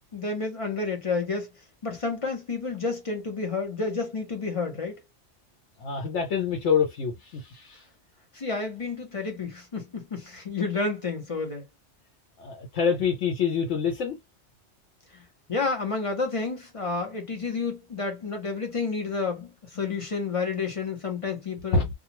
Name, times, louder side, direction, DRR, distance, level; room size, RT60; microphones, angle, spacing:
voice 1, 0.1-1.5 1.8-5.0 8.3-11.7 15.1-15.2 15.5-21.9, left 4 dB, 30° left, 0.9 m, -30 dB
voice 2, 5.8-7.8 12.4-14.2 21.7-21.8, left 6 dB, 85° left, 1.1 m, -26 dB
2.4 x 2.4 x 2.9 m
omnidirectional pair, 1.2 m